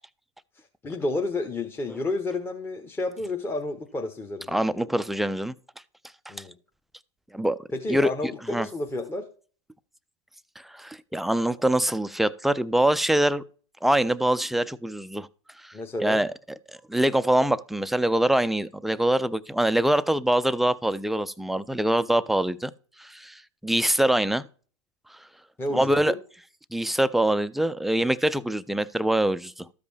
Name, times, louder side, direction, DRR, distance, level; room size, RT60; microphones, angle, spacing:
voice 1, 0.6-4.7 6.3-6.5 7.7-9.3 15.7-16.2 25.6-26.2, left 2 dB, 15° left, 0.9 m, -31 dB
voice 2, 4.5-5.5 7.3-7.6 7.9-8.1 8.5-8.7 10.7-13.4 13.8-15.3 15.6-15.7 16.0-16.3 16.9-22.7 23.0-24.4 25.7-26.1 26.7-29.7, right 1 dB, ahead, 0.3 m, -24 dB
13.0 x 5.1 x 3.3 m
hypercardioid pair, 110°, 16 cm